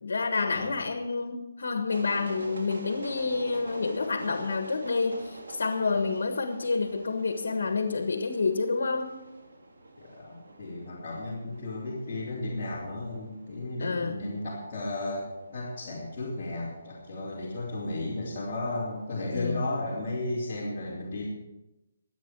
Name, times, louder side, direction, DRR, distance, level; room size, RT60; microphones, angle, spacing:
voice 1, 0.0-9.1 13.8-14.1 19.3-19.7, left 4 dB, 70° left, 7 dB, 1.5 m, -29 dB
sound 1, 1.9-19.5, right 2 dB, 90° right, 2.8 m, -47 dB
voice 2, 10.0-21.3, left 2 dB, 20° left, -11 dB, 3.3 m, -34 dB
23.5 x 8.5 x 4.8 m, 0.99 s
hypercardioid pair, 175°, 0 cm